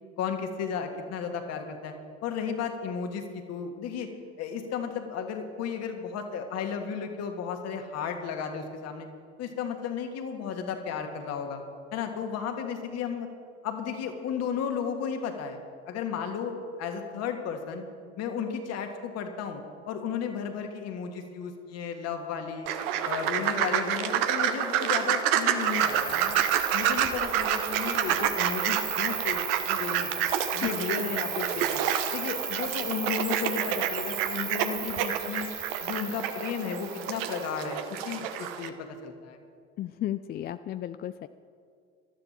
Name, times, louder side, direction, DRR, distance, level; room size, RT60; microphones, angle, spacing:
voice 1, 0.2-4.1 4.4-9.1 9.4-11.6 11.9-13.3 13.6-15.6 15.9-17.8 18.2-22.7 23.0-26.4 26.7-30.1 30.5-31.8 32.1-35.5 35.8-39.4, left 7 dB, 50° left, 5 dB, 1.8 m, -34 dB
sound 1, 22.7-38.7, right 9 dB, 65° right, 1.0 m, -28 dB
Cricket, 25.6-37.6, right 7 dB, 30° right, 1.0 m, -37 dB
voice 2, 39.8-41.3, left 12 dB, 30° left, 12 dB, 0.4 m, -33 dB
18.0 x 12.5 x 4.4 m, 2.2 s
figure-of-eight pair, 65°, 33 cm